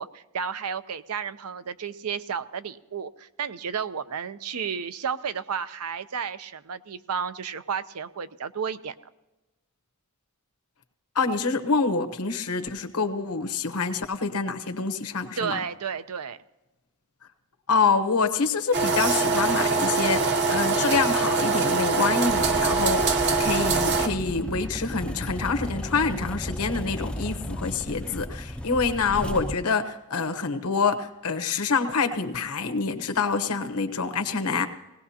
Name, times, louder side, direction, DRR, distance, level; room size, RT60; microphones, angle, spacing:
voice 1, 0.0-8.9 15.4-16.4, right 6 dB, 90° right, 13 dB, 0.6 m, -32 dB
voice 2, 11.1-15.6 17.7-34.7, left 4 dB, 85° left, 7 dB, 1.1 m, -26 dB
sound 1, 18.7-24.1, right 4 dB, 50° right, 1.0 m, -23 dB
sound 2, 22.3-29.6, equal, 5° left, 0.4 m, -34 dB
19.5 x 17.5 x 2.9 m, 1.0 s
head